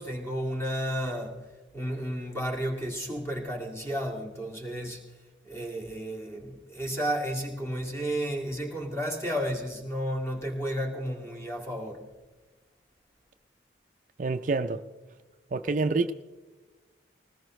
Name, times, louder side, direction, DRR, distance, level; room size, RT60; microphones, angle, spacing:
voice 1, 0.0-1.4 1.7-5.0 5.5-12.0, equal, 15° left, 2.2 m, -32 dB
voice 2, 14.2-14.8 15.5-16.1, right 3 dB, 45° right, 0.4 m, -27 dB
20.0 x 19.0 x 3.1 m
head